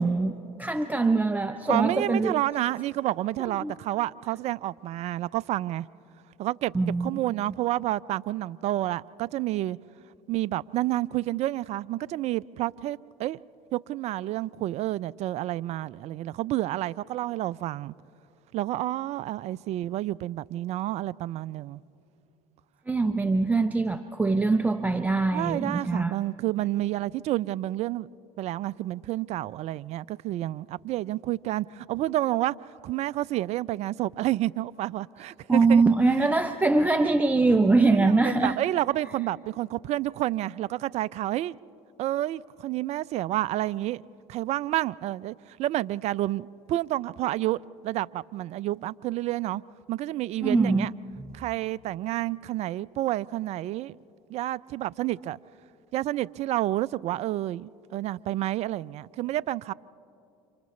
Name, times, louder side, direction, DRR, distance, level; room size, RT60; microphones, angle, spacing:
voice 1, 0.0-2.4 3.6-3.7 6.7-7.1 22.9-26.1 35.5-38.6 50.4-50.9 51.2-51.4, right 3 dB, 10° right, 0.7 m, -23 dB
voice 2, 1.7-5.9 6.4-6.7 7.0-9.8 10.3-13.4 13.7-17.9 18.5-21.8 25.3-28.1 28.4-32.6 32.8-35.8 37.9-41.6 42.0-44.0 44.3-49.6 49.9-50.9 51.3-54.0 54.3-55.4 55.9-59.7, right 15 dB, 50° right, 0.4 m, -29 dB
30.0 x 27.0 x 3.2 m
hypercardioid pair, 80°, 15 cm